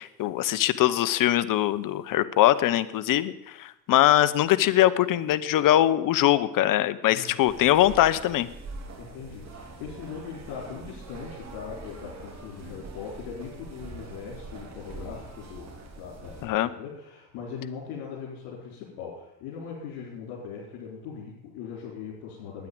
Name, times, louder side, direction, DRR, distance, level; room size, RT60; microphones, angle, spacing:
voice 1, 0.0-3.3 3.6-8.5 16.4-16.7, left 13 dB, 50° left, 15 dB, 0.9 m, -22 dB
voice 2, 7.1-7.5 9.0-22.7, left 6 dB, 65° left, -4 dB, 4.5 m, -40 dB
sound 1, 7.4-16.5, right 3 dB, 40° right, 3.4 m, -43 dB
10.0 x 9.6 x 8.7 m, 0.86 s
supercardioid pair, 95°, 42 cm